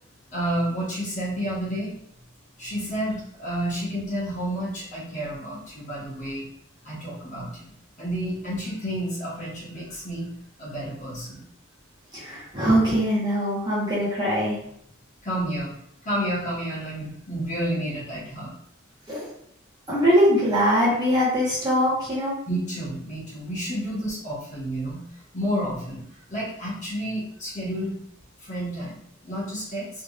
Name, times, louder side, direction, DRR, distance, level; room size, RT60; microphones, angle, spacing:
voice 1, 0.3-1.9 2.6-6.5 6.8-10.3 10.6-11.4 15.2-15.7 16.0-18.5 21.8-21.9 22.5-25.0 25.3-26.0 26.3-28.0 28.4-29.9, right 1 dB, 35° left, -8 dB, 1.4 m, -30 dB
voice 2, 12.1-14.6 19.1-19.3 19.9-22.3, equal, 20° right, -9 dB, 1.3 m, -22 dB
3.5 x 3.4 x 2.5 m, 0.69 s
head